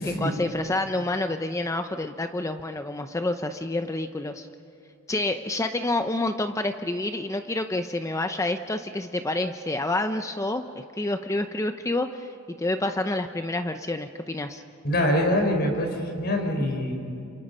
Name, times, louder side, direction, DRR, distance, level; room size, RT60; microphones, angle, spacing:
voice 1, 0.2-4.5 5.1-14.6, left 2 dB, 15° left, 7 dB, 0.7 m, -28 dB
voice 2, 14.8-16.9, left 1 dB, 50° left, 3 dB, 4.7 m, -24 dB
29.0 x 27.5 x 5.5 m, 2.8 s
head